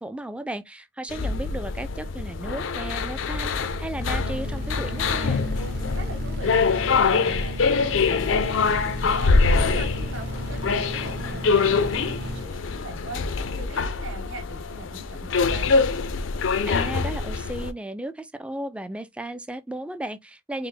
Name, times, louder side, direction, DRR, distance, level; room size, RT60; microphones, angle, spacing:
voice 1, 0.0-5.4 16.7-20.7, right 1 dB, 5° right, 0.3 m, -35 dB
sound 1, 1.1-17.7, left 4 dB, 80° left, 0.5 m, -24 dB
sound 2, 3.9-12.4, right 1 dB, 55° right, 1.0 m, -36 dB
voice 2, 5.5-15.7, right 2 dB, 85° right, 2.4 m, -41 dB
4.6 x 2.1 x 3.7 m
head